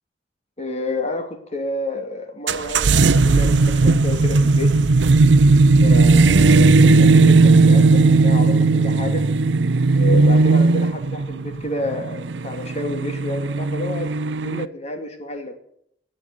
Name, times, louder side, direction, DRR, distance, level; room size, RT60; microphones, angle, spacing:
voice 1, 0.6-4.7 5.8-9.2 10.0-15.5, left 1 dB, 40° left, 4 dB, 2.6 m, -29 dB
sound 1, 2.5-14.6, right 3 dB, 85° right, 0.6 m, -16 dB
18.5 x 6.5 x 9.5 m, 0.70 s
head